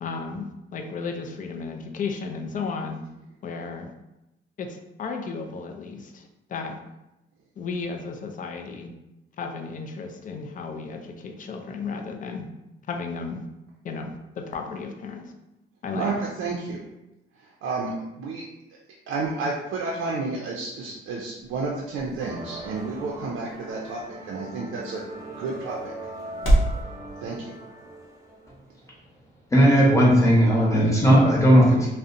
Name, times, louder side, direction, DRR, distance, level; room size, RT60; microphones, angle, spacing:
voice 1, 0.0-3.0 3.4-3.9 4.6-6.8 7.6-8.9 9.4-12.5 12.9-13.5 13.8-15.3 15.8-16.2, left 4 dB, 40° left, 4 dB, 0.4 m, -34 dB
voice 2, 15.9-16.8 17.4-18.4 19.1-25.0 25.4-25.9 27.2-27.5, right 3 dB, 75° right, -2 dB, 0.4 m, -31 dB
sound 1, 20.5-26.8, right 1 dB, 85° left, 0.7 m, -30 dB
sound 2, 22.2-28.7, right 1 dB, 15° right, 0.6 m, -40 dB
voice 3, 29.5-31.9, equal, 15° left, -4 dB, 0.8 m, -16 dB
2.5 x 2.0 x 2.5 m, 0.93 s
cardioid pair, 90°, 20 cm